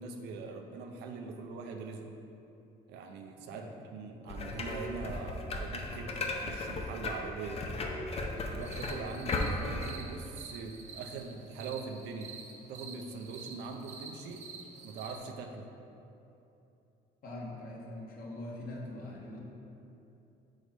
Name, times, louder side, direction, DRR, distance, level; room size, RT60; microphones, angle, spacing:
voice 1, 0.0-2.2 2.9-7.6 8.5-12.4 12.7-14.5 14.8-15.7, right 4 dB, 80° right, 3 dB, 0.6 m, -42 dB
voice 2, 3.5-4.0 17.2-19.4, left 1 dB, 60° left, -3 dB, 1.3 m, -43 dB
sound 1, 4.3-9.9, left 2 dB, 35° left, 0.6 m, -36 dB
sound 2, 8.6-15.2, right 5 dB, 45° right, 0.7 m, -48 dB
4.9 x 4.1 x 5.2 m, 2.9 s
cardioid pair, 110°, 17 cm